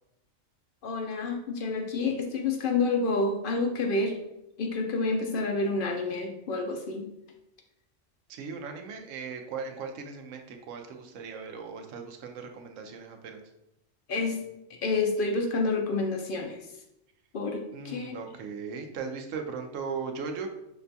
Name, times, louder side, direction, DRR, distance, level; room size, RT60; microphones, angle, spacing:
voice 1, 0.8-4.2 4.6-7.1 14.1-14.4 14.7-16.7 17.3-18.2, left 3 dB, 60° left, 3 dB, 0.6 m, -29 dB
voice 2, 8.3-13.4 17.7-20.5, right 5 dB, 80° right, 4 dB, 0.9 m, -38 dB
5.8 x 2.2 x 2.6 m, 0.85 s
omnidirectional pair, 1.3 m